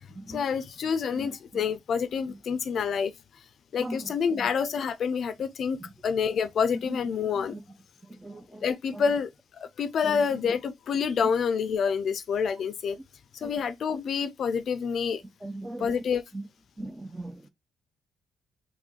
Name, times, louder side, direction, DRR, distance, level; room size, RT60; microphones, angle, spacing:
voice 1, 0.3-3.1 3.7-5.8 6.0-7.6 8.6-9.3 9.8-13.0 13.4-15.2 15.8-16.2, left 6 dB, 60° left, 0.4 m, -27 dB
voice 2, 1.1-1.6 2.3-2.4 3.8-4.5 6.9-7.0 7.5-7.6 8.1-8.6 8.9-9.0 10.0-10.6 13.4-13.5 15.4-15.9 16.3-16.4 16.8-17.4, right 1 dB, 15° right, 0.5 m, -39 dB
3.0 x 2.5 x 3.6 m
cardioid pair, 90°, 0 cm